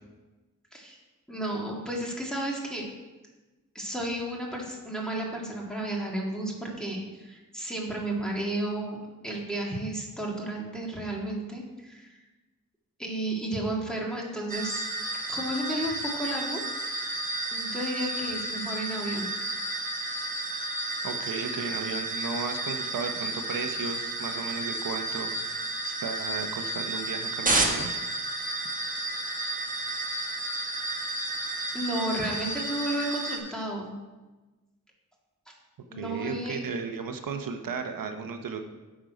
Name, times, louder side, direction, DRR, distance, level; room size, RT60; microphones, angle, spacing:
voice 1, 1.3-2.9 3.7-12.1 13.0-14.9 15.3-16.6 17.5-19.3 31.7-33.9 35.5-35.6 35.9-36.6, right 1 dB, ahead, -2 dB, 1.7 m, -32 dB
sound 1, 14.5-33.4, right 2 dB, 25° right, 1.1 m, -32 dB
voice 2, 21.0-27.9 36.0-38.6, right 5 dB, 80° right, 5 dB, 0.9 m, -35 dB
9.0 x 6.3 x 5.0 m, 1.2 s
wide cardioid pair, 140°, 33 cm